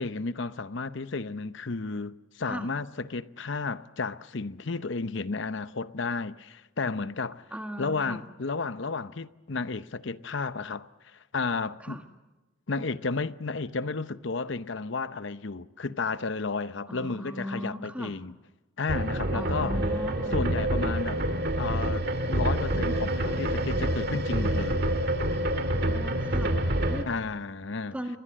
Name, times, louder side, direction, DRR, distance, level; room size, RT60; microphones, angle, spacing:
voice 1, 0.0-7.4 7.8-12.0 12.7-18.3 18.8-19.8 20.3-21.2 21.6-22.0 22.3-24.8 27.1-28.0, left 4 dB, 60° left, 0.8 m, -32 dB
voice 2, 7.5-8.2 11.8-12.0 16.9-18.1 19.3-20.5 25.8-27.1 27.9-28.2, equal, 5° right, 1.8 m, -38 dB
sound 1, 18.9-27.0, right 1 dB, 50° right, 2.0 m, -27 dB
28.5 x 21.5 x 7.6 m
head